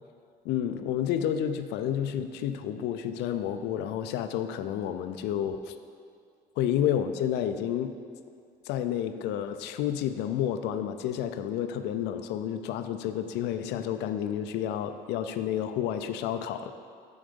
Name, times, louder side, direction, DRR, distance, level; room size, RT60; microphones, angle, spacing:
voice 1, 0.4-5.7 6.6-7.9 8.7-16.7, left 10 dB, 85° left, 10 dB, 0.4 m, -30 dB
7.2 x 3.9 x 5.2 m, 2.3 s
cardioid pair, 110°, 17 cm